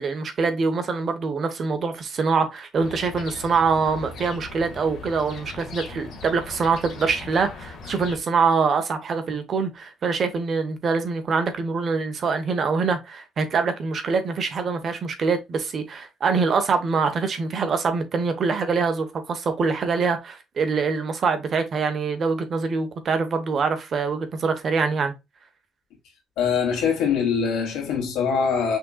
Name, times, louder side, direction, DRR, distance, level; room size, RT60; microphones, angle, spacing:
voice 1, 0.0-25.1, right 5 dB, 40° right, 1.1 m, -24 dB
sound 1, 2.8-8.2, left 4 dB, 50° left, 1.6 m, -39 dB
voice 2, 26.4-28.8, left 6 dB, 85° left, 2.3 m, -23 dB
5.7 x 3.8 x 2.3 m
cardioid pair, 140°, 0 cm